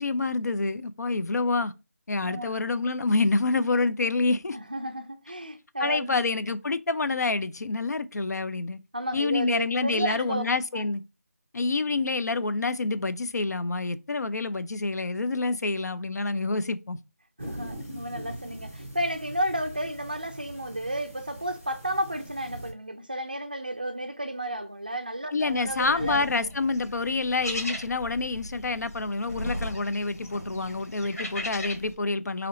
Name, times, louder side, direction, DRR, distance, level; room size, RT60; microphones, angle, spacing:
voice 1, 0.0-1.7 2.1-4.6 5.8-8.8 9.1-11.0 11.5-17.0 25.3-32.5, left 3 dB, 85° left, 0.4 m, -27 dB
voice 2, 2.2-2.6 4.5-6.2 8.9-10.4 10.7-10.8 17.4-26.5, right 1 dB, 35° right, 0.3 m, -32 dB
sound 1, 17.4-22.7, right 1 dB, 5° left, 0.6 m, -42 dB
sound 2, 25.4-31.9, left 1 dB, 70° left, 1.4 m, -38 dB
3.7 x 2.9 x 3.2 m
figure-of-eight pair, 180°, 9 cm